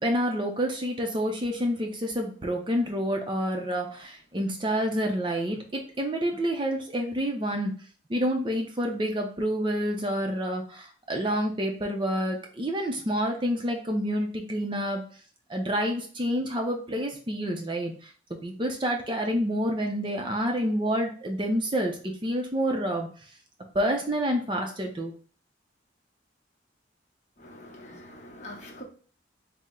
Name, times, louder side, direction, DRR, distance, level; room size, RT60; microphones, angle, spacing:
voice 1, 0.0-7.7 8.1-15.0 15.5-23.1 23.7-25.1, equal, 25° right, 0.5 m, -28 dB
voice 2, 27.4-28.8, left 1 dB, 40° left, 0.9 m, -44 dB
4.2 x 2.0 x 3.6 m
head